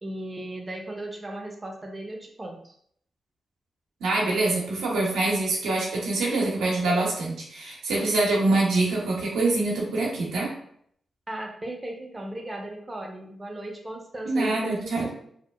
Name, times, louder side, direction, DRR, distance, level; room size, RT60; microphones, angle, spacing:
voice 1, 0.0-2.8 11.3-15.1, right 1 dB, 30° right, 1 dB, 0.6 m, -36 dB
voice 2, 4.0-10.5 14.2-15.1, right 2 dB, 90° right, -3 dB, 0.6 m, -25 dB
2.8 x 2.1 x 2.2 m, 0.66 s
supercardioid pair, 45°, 0 cm